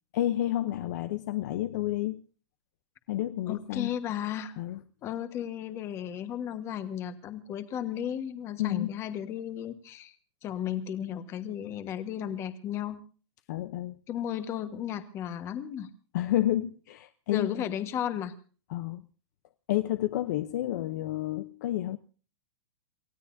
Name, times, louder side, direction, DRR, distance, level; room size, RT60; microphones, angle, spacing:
voice 1, 0.1-2.2 3.1-3.9 4.6-4.8 8.6-8.9 13.5-13.9 16.1-17.5 18.7-19.0 19.7-22.0, left 14 dB, 40° left, 0.7 m, -30 dB
voice 2, 3.5-4.5 5.0-10.1 10.4-13.0 14.1-15.9 17.3-18.3, left 10 dB, 20° left, 1.3 m, -34 dB
28.5 x 16.0 x 2.7 m
supercardioid pair, 175°, 15 cm